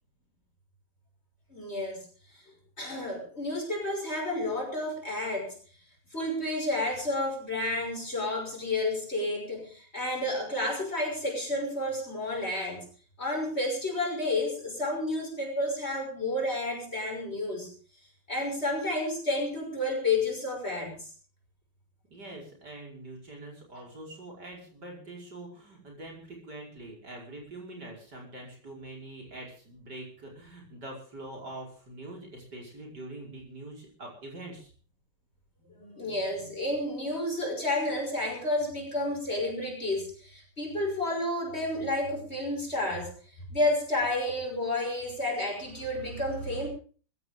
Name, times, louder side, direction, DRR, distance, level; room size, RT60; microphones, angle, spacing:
voice 1, 1.5-2.0 2.8-5.5 6.1-12.8 13.2-17.7 18.3-21.1 23.7-23.8 35.7-43.1 43.5-46.7, left 1 dB, 30° left, 1 dB, 6.4 m, -31 dB
voice 2, 22.1-34.7, right 2 dB, 50° right, -1 dB, 5.8 m, -44 dB
21.0 x 15.5 x 3.7 m, 0.40 s
omnidirectional pair, 2.2 m